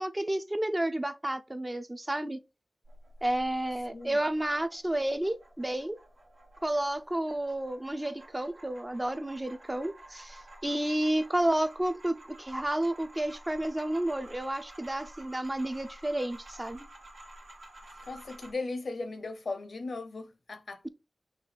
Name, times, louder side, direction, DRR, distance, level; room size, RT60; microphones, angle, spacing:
voice 1, 0.0-2.4 3.2-6.0 6.6-16.9, right 1 dB, 20° right, 0.5 m, -31 dB
sound 1, 2.8-18.5, right 1 dB, 85° right, 1.5 m, -52 dB
voice 2, 18.1-20.8, left 3 dB, 75° left, 0.7 m, -37 dB
6.0 x 2.4 x 3.2 m
wide cardioid pair, 65°, 0 cm